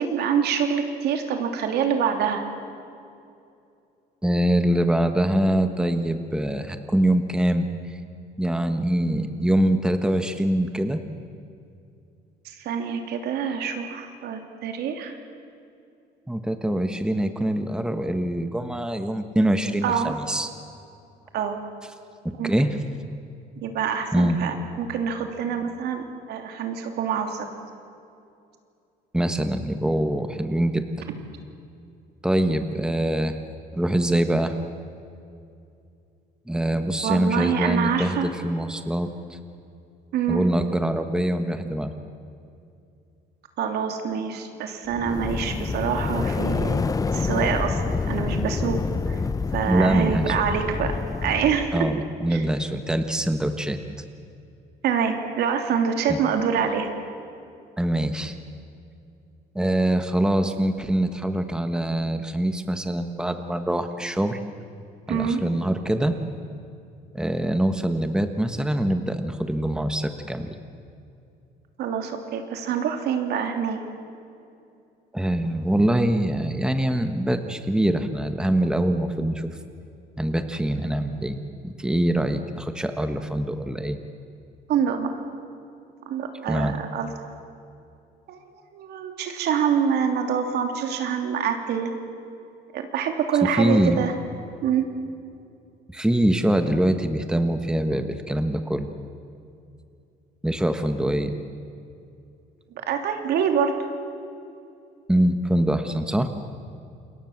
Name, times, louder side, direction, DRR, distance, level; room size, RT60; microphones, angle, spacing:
voice 1, 0.0-2.4 12.6-15.1 19.8-20.1 21.3-21.6 22.4-22.5 23.6-27.5 37.0-38.3 40.1-40.4 43.6-46.8 47.1-48.8 49.1-49.2 49.5-51.7 52.3-52.4 54.8-56.9 65.1-65.4 71.8-73.8 84.7-85.1 86.1-87.1 88.3-88.4 88.7-91.9 92.7-94.1 94.6-94.8 102.9-103.7, right 7 dB, 75° right, 5 dB, 3.1 m, -25 dB
voice 2, 4.2-8.0 8.4-11.0 16.3-20.5 22.4-22.8 24.1-24.4 29.1-31.0 32.2-33.3 33.7-34.5 36.5-39.4 40.3-41.9 49.7-50.4 51.7-53.8 56.1-56.2 57.8-58.3 59.5-64.4 65.1-66.1 67.1-70.6 75.1-79.5 80.2-81.4 81.6-84.0 86.5-86.8 93.5-94.0 95.9-98.9 100.4-101.3 105.1-106.3, right 1 dB, 5° right, 7 dB, 1.4 m, -24 dB
sound 1, 44.9-51.9, left 4 dB, 20° left, 0.7 m, -27 dB
28.0 x 22.0 x 7.4 m, 2.6 s
cardioid pair, 110°, 17 cm